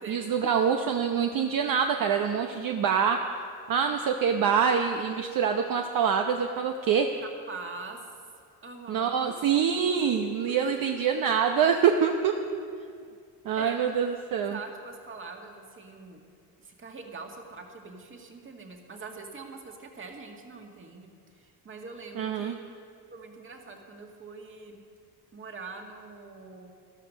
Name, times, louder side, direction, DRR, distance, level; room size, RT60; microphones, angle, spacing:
voice 1, 0.1-3.2 3.7-7.1 8.9-12.3 12.6-12.9 13.4-14.6 22.2-22.5, right 7 dB, 55° right, 4 dB, 0.9 m, -25 dB
voice 2, 7.2-8.0 8.6-9.4 10.7-10.9 13.6-13.8 14.5-16.2 16.6-21.1 21.3-22.7 23.1-24.8 25.3-26.7, right 4 dB, 30° right, 2 dB, 2.0 m, -43 dB
13.0 x 12.0 x 6.4 m, 2.2 s
cardioid pair, 110°, 41 cm